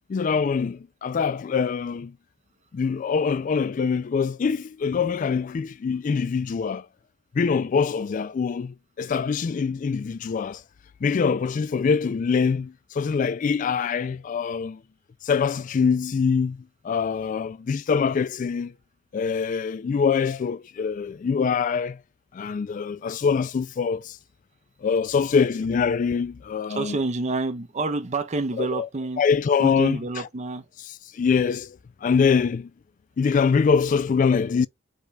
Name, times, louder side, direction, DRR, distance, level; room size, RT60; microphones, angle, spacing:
voice 1, 0.1-2.1 2.7-6.9 7.3-10.6 11.0-14.8 15.2-18.7 19.1-22.0 22.3-24.2 24.8-27.0 28.6-28.9 29.2-30.0 31.1-32.7 33.2-34.7, left 5 dB, 40° left, 0.3 m, -24 dB
voice 2, 26.7-29.2 29.6-30.7, right 3 dB, 35° right, 0.6 m, -28 dB
5.0 x 2.3 x 4.0 m
head